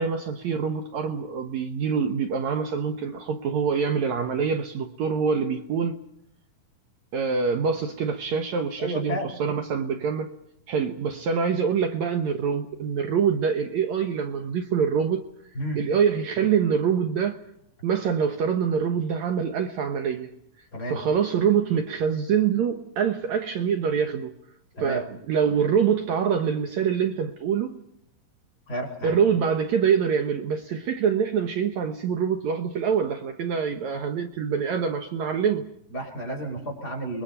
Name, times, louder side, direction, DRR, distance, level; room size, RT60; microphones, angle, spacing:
voice 1, 0.0-6.0 7.1-10.3 10.7-15.3 15.8-17.4 17.8-20.3 20.9-24.3 24.8-27.8 29.0-35.7, right 7 dB, 65° right, 2.2 m, -25 dB
voice 2, 8.8-9.3 15.5-15.8 20.7-21.0 24.7-25.0 28.7-29.2 35.9-37.2, equal, 25° left, 6.3 m, -32 dB
30.0 x 22.5 x 5.6 m
omnidirectional pair, 3.8 m